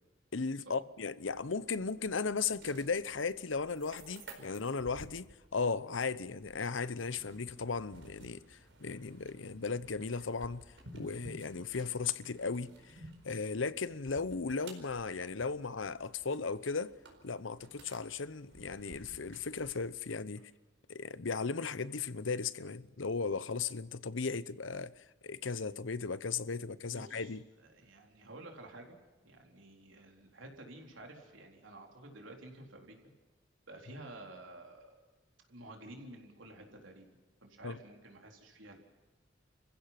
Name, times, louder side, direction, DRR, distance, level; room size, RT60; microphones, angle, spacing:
voice 1, 0.3-5.3 5.5-10.6 10.9-16.9 17.2-20.5 20.9-27.4 37.6-37.8, left 4 dB, 80° left, 0.9 m, -36 dB
sound 1, 1.2-19.9, right 1 dB, 70° right, 4.6 m, -55 dB
voice 2, 26.9-27.3 27.6-29.0 29.2-33.0 33.7-35.0 35.5-38.8, right 1 dB, 85° right, 4.0 m, -51 dB
29.5 x 16.0 x 6.0 m
head